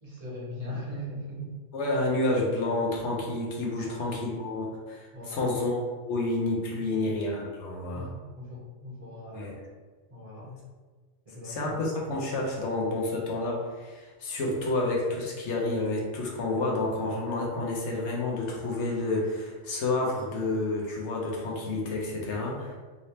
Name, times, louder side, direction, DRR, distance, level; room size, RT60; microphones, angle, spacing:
voice 1, 0.0-1.5 3.8-4.4 5.1-5.5 6.9-7.0 7.9-9.5 10.1-10.5 11.2-11.9, equal, 35° right, -5 dB, 0.9 m, -40 dB
voice 2, 1.7-5.8 6.0-8.1 9.3-9.6 10.4-10.5 11.4-22.7, left 2 dB, 70° left, -2 dB, 1.0 m, -29 dB
3.1 x 2.9 x 2.7 m, 1.4 s
omnidirectional pair, 1.3 m